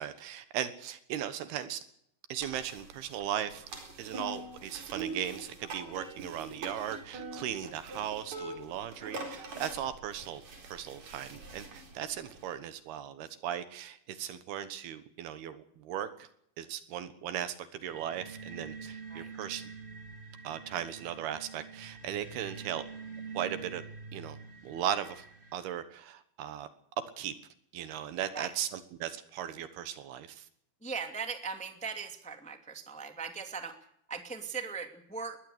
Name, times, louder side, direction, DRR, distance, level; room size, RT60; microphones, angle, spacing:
voice 1, 0.0-1.8 2.3-3.6 4.0-16.3 16.6-19.6 20.4-22.8 23.3-23.8 24.1-24.4 24.6-25.2 25.5-26.7 27.2-27.3 27.7-30.5, right 10 dB, 75° right, 12 dB, 3.2 m, -37 dB
sound 1, 2.4-12.5, right 3 dB, 45° right, 5.3 m, -44 dB
sound 2, 17.8-25.5, right 5 dB, 20° right, 1.6 m, -46 dB
voice 2, 30.8-33.8 34.1-35.4, right 5 dB, 5° left, 5 dB, 1.5 m, -39 dB
21.5 x 17.0 x 8.0 m, 0.71 s
omnidirectional pair, 4.7 m